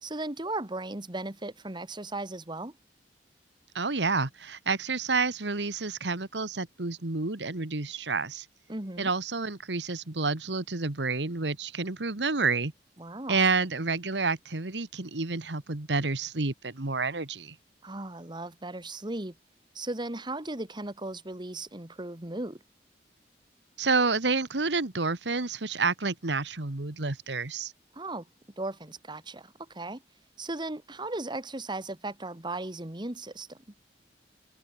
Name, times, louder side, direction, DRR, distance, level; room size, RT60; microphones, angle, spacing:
voice 1, 0.0-2.8 8.7-9.1 13.0-13.4 17.8-19.3 19.8-22.6 27.9-28.3 28.6-30.0 30.4-33.6, right 2 dB, 25° right, 1.9 m, -36 dB
voice 2, 3.8-8.5 9.0-12.7 13.3-17.6 23.8-27.7, right 4 dB, 90° right, 1.7 m, -29 dB
head